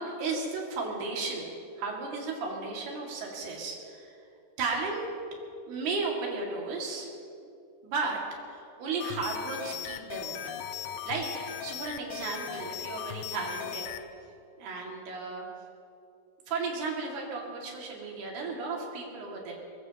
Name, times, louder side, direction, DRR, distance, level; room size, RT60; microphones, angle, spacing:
voice 1, 0.0-1.5 1.8-4.1 4.6-5.1 5.7-7.1 7.8-8.2 8.5-10.6 11.1-14.0 14.6-15.5 16.5-19.5, right 4 dB, 75° right, -1 dB, 4.3 m, -34 dB
sound 1, 9.0-14.0, left 10 dB, 85° left, 2.0 m, -38 dB
22.0 x 22.0 x 3.0 m, 2.6 s
omnidirectional pair, 4.7 m